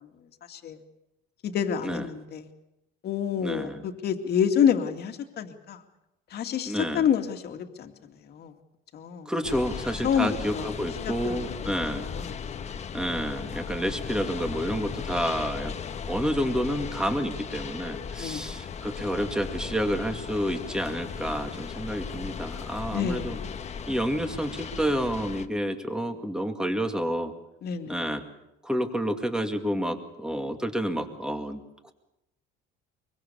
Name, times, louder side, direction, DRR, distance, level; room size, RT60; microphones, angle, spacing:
voice 1, 1.4-2.4 3.0-5.8 6.3-7.9 8.3-8.5 8.9-9.3 10.0-10.7 11.0-11.7 12.0-12.8 18.2-18.4 22.9-23.5 27.6-28.1, left 8 dB, 50° left, 5 dB, 2.5 m, -28 dB
voice 2, 3.4-3.8 6.7-7.1 9.3-12.1 12.9-15.7 16.1-23.4 23.9-27.3 27.9-28.2 28.6-31.9, equal, 5° right, 5 dB, 2.3 m, -29 dB
sound 1, 9.4-25.5, left 6 dB, 35° left, 1.3 m, -36 dB
24.0 x 23.5 x 7.0 m, 0.86 s
cardioid pair, 140°, 20 cm